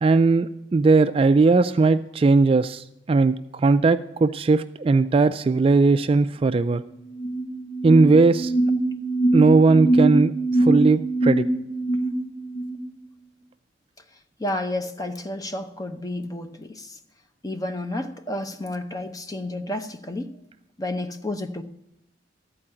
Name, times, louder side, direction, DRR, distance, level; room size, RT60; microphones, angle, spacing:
voice 1, 0.0-6.8 7.8-8.5 9.3-10.3 10.6-11.5, right 3 dB, 30° right, 11 dB, 0.3 m, -18 dB
sound 1, 7.0-12.8, right 2 dB, 60° left, 1.8 m, -23 dB
voice 2, 14.4-17.0 17.4-20.3 20.8-21.6, left 1 dB, 20° left, 7 dB, 0.7 m, -31 dB
13.5 x 4.6 x 8.7 m, 0.88 s
head